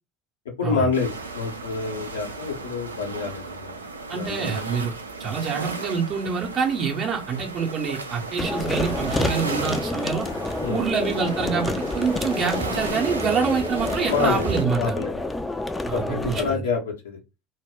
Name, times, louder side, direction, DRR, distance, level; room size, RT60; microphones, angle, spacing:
voice 1, 0.6-3.8 4.1-4.6 10.6-10.8 14.1-15.2 15.9-17.2, left 5 dB, 70° left, 1 dB, 0.7 m, -27 dB
sound 1, 0.9-14.6, right 3 dB, 80° right, 0.3 m, -35 dB
voice 2, 4.1-4.9 5.2-10.3 10.7-15.0 15.8-16.6, right 6 dB, 40° right, 0 dB, 0.6 m, -26 dB
sound 2, 8.4-16.5, left 2 dB, 15° left, 0.3 m, -28 dB
2.1 x 2.1 x 3.4 m, 0.26 s
figure-of-eight pair, 65°, 0 cm